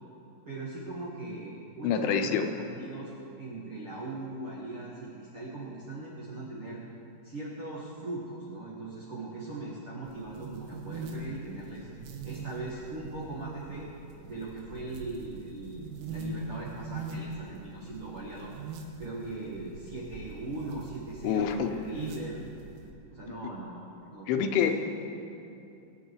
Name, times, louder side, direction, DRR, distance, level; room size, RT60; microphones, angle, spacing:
voice 1, 0.4-3.1 3.4-6.8 7.2-11.9 12.2-13.9 14.3-18.5 19.0-22.4 23.1-24.7, right 2 dB, 70° right, -6 dB, 1.3 m, -39 dB
voice 2, 1.8-2.5 21.2-21.7 23.3-23.4 24.3-24.7, left 8 dB, 85° left, 6 dB, 3.3 m, -26 dB
sound 1, 10.1-22.9, right 3 dB, 90° right, 3.7 m, -43 dB
21.5 x 8.4 x 4.8 m, 2.6 s
omnidirectional pair, 5.5 m